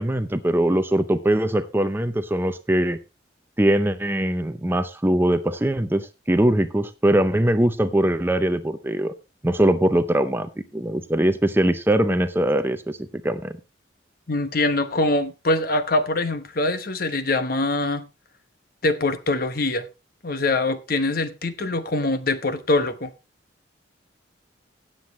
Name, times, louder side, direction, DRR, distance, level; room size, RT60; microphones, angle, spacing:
voice 1, 0.0-3.0 3.6-9.1 9.4-13.6, right 1 dB, 10° right, 0.5 m, -22 dB
voice 2, 14.3-18.0 18.8-19.9 20.2-23.1, left 2 dB, 50° left, 1.1 m, -23 dB
17.0 x 7.7 x 3.1 m
head